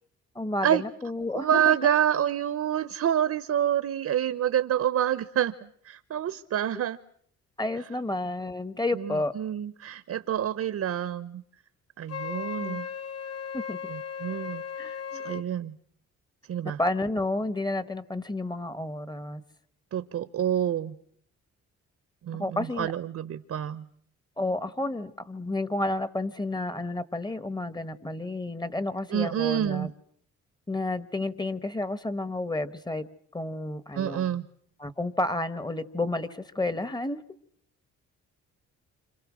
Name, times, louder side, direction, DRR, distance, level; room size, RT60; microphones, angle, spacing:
voice 1, 0.3-1.7 7.6-9.3 12.6-12.8 13.5-13.8 14.8-15.2 16.8-19.4 22.4-22.9 24.4-29.9 30.7-33.0 33.3-34.3 34.8-37.2, left 2 dB, 15° left, 1.3 m, -31 dB
voice 2, 1.3-7.0 8.9-11.4 12.0-12.9 13.9-15.8 16.5-16.8 19.9-21.0 22.2-23.9 29.1-29.9 33.9-34.5, right 10 dB, 55° right, 1.0 m, -28 dB
Wind instrument woodwind instrument, 12.1-15.5, left 7 dB, 55° left, 1.6 m, -36 dB
29.0 x 27.0 x 6.3 m
cardioid pair, 90°, 30 cm